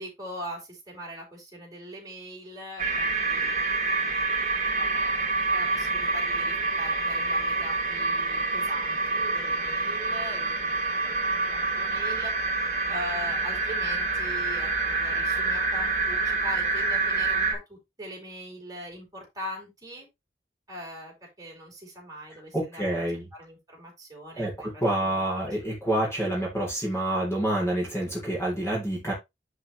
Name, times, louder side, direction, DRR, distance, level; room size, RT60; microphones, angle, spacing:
voice 1, 0.0-3.6 3.9-5.1 5.5-12.3 12.9-20.1 20.7-23.0 23.3-25.2, equal, 20° right, -2 dB, 4.9 m, -41 dB
sound 1, 2.8-17.5, right 3 dB, 45° right, 4.1 m, -27 dB
voice 2, 22.5-23.2 24.4-29.1, right 1 dB, 15° left, -3 dB, 3.5 m, -28 dB
10.5 x 5.0 x 3.2 m, 0.21 s
head